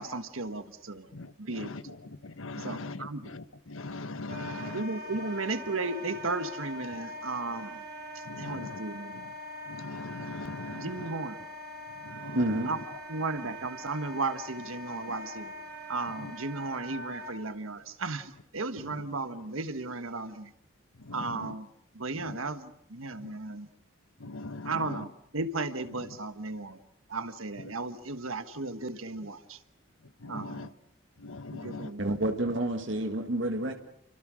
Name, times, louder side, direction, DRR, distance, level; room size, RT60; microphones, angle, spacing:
voice 1, 0.0-1.1 1.4-1.9 2.6-3.3 4.4-7.8 8.4-9.2 10.7-11.4 12.7-12.8 13.1-15.5 15.9-20.5 21.1-21.7 21.9-23.7 24.6-25.1 25.3-26.8 27.1-29.6 30.3-30.7 31.5-32.1, right 3 dB, 85° right, 10 dB, 1.4 m, -35 dB
voice 2, 1.1-2.0 2.2-4.8 8.3-8.8 9.7-11.1 12.1-12.4 16.2-16.3 21.1-21.5 22.2-22.4 23.2-23.3 24.2-25.0 27.6-27.7 30.2-30.7 31.2-31.9, left 2 dB, 80° left, 12 dB, 1.2 m, -40 dB
Wind instrument woodwind instrument, 4.3-17.3, equal, 50° right, 3.8 m, -43 dB
voice 3, 12.4-12.7 32.0-33.7, right 1 dB, 65° right, 5 dB, 1.8 m, -29 dB
29.5 x 25.5 x 6.4 m, 0.77 s
head